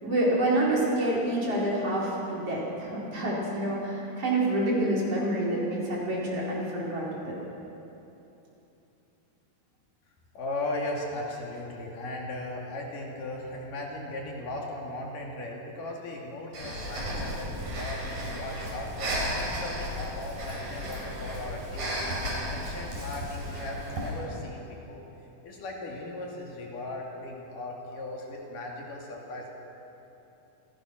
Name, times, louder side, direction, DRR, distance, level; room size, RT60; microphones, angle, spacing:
voice 1, 0.0-7.4, right 1 dB, 45° right, -5 dB, 5.2 m, -27 dB
voice 2, 10.3-22.1 22.4-25.0 25.4-29.5, left 2 dB, 70° left, -1 dB, 4.0 m, -37 dB
Breathing, 16.5-24.2, equal, 70° right, 6.3 m, -34 dB
27.0 x 16.5 x 6.3 m, 3.0 s
omnidirectional pair, 4.0 m